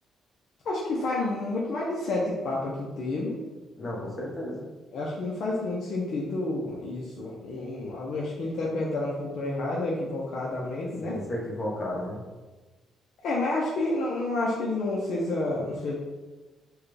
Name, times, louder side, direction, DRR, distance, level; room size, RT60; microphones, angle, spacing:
voice 1, 0.6-3.4 4.9-11.2 13.2-15.9, left 2 dB, 70° left, -3 dB, 0.6 m, -29 dB
voice 2, 3.8-4.6 11.0-12.2, left 1 dB, 35° left, -4 dB, 1.3 m, -33 dB
4.5 x 2.3 x 3.3 m, 1.2 s
cardioid pair, 90°, 0 cm